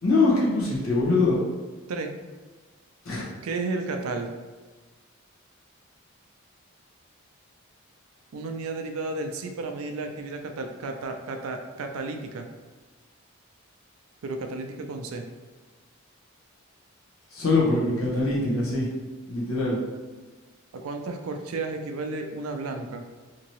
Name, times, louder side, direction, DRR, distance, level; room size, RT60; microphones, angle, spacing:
voice 1, 0.0-1.4 3.0-3.3 17.3-18.9 19.3-19.8, left 3 dB, 80° left, -6 dB, 0.9 m, -23 dB
voice 2, 3.4-4.3 8.3-12.5 14.2-15.2 20.7-23.1, right 3 dB, 80° right, 5 dB, 0.4 m, -32 dB
2.9 x 2.7 x 3.0 m, 1.3 s
head